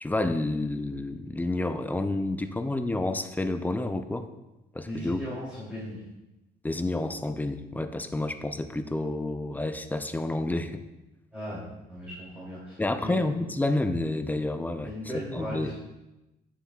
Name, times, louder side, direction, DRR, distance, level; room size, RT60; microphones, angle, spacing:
voice 1, 0.0-4.3 4.7-5.2 6.6-10.8 12.8-14.9 15.3-15.7, left 2 dB, 10° left, 9 dB, 0.4 m, -29 dB
voice 2, 4.8-6.0 11.3-13.2 14.8-15.7, equal, 5° right, -9 dB, 2.7 m, -37 dB
9.4 x 7.0 x 2.3 m, 1.0 s
cardioid pair, 110°, 17 cm